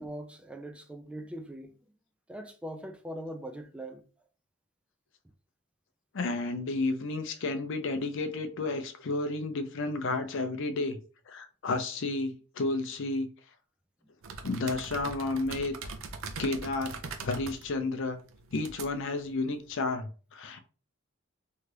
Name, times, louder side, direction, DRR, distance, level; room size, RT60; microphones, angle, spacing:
voice 1, 0.0-1.8 2.3-4.0, right 1 dB, 5° right, 0.3 m, -41 dB
voice 2, 6.1-11.0 11.3-13.3 14.4-15.7 16.4-18.2 18.5-20.6, left 3 dB, 65° left, 0.5 m, -32 dB
sound 1, 14.2-19.8, right 4 dB, 70° right, 0.5 m, -43 dB
2.8 x 2.4 x 3.2 m
head